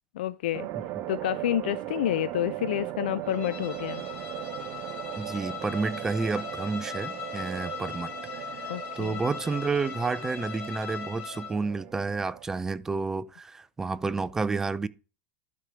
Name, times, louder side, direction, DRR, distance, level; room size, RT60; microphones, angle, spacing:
voice 1, 0.2-0.7 1.1-4.0 8.7-9.2, left 13 dB, 75° left, 0.4 m, -29 dB
sound 1, 0.5-12.4, right 15 dB, 40° right, 0.7 m, -38 dB
Bowed string instrument, 3.3-11.6, left 7 dB, 35° left, 1.7 m, -40 dB
voice 2, 5.2-8.4 9.0-14.9, right 4 dB, 10° right, 0.3 m, -30 dB
12.0 x 4.4 x 5.0 m
supercardioid pair, 155°, 5 cm